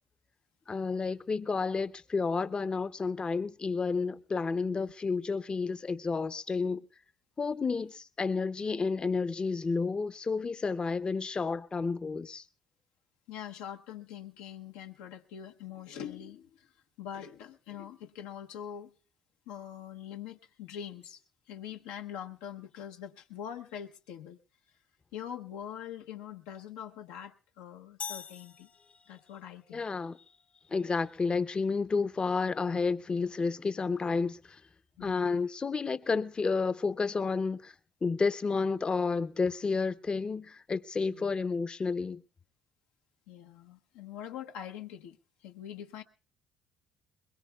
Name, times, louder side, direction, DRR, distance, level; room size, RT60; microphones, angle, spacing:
voice 1, 0.7-6.8 7.4-12.4 29.7-30.2 30.7-34.6 35.0-37.7 38.0-42.2, left 4 dB, 30° left, 0.6 m, -31 dB
voice 2, 13.3-18.9 19.5-21.2 21.5-24.4 25.1-28.7 29.1-29.9 35.0-35.4 41.1-41.3 43.3-45.2 45.4-46.0, left 9 dB, 90° left, 0.9 m, -43 dB
sound 1, 28.0-29.4, left 8 dB, 55° left, 1.2 m, -43 dB
21.5 x 21.5 x 2.3 m
supercardioid pair, 80°, 3 cm